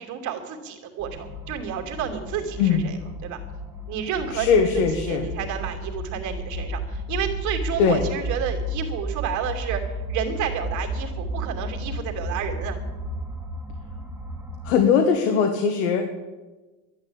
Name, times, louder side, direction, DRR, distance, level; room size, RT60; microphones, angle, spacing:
voice 1, 0.0-3.0 3.2-3.4 3.9-4.6 5.0-9.8 10.1-12.8, right 8 dB, 45° right, 2 dB, 2.8 m, -30 dB
sound 1, 1.0-14.7, equal, 5° right, 1.5 m, -33 dB
voice 2, 4.3-5.3 7.8-8.0 14.6-16.1, left 6 dB, 90° left, 4 dB, 1.8 m, -20 dB
12.0 x 11.0 x 8.7 m, 1.2 s
cardioid pair, 150°, 39 cm